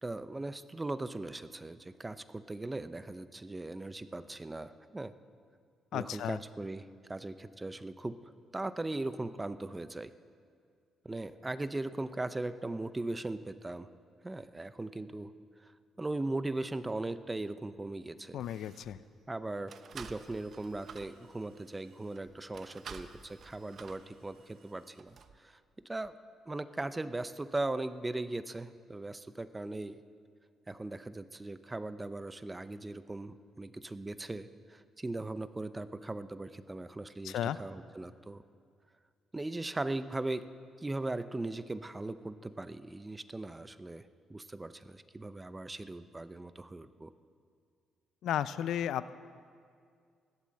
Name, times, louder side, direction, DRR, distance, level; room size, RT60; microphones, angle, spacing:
voice 1, 0.0-5.1 5.9-8.2 8.5-10.1 11.0-13.9 14.2-15.3 16.0-18.4 19.3-25.6 25.8-26.2 26.5-30.0 30.7-38.4 39.3-40.4 40.8-47.1, right 2 dB, 15° right, 13 dB, 0.6 m, -39 dB
voice 2, 5.9-6.4 18.3-19.0 37.2-37.6 48.2-49.1, left 10 dB, 75° left, 15 dB, 0.5 m, -34 dB
sound 1, 16.9-17.0 17.9-18.0 18.3-19.0 19.7-25.4 26.0-26.1, right 6 dB, 55° right, 0.9 m, -52 dB
15.5 x 12.0 x 7.6 m, 2.2 s
cardioid pair, 90°, 0 cm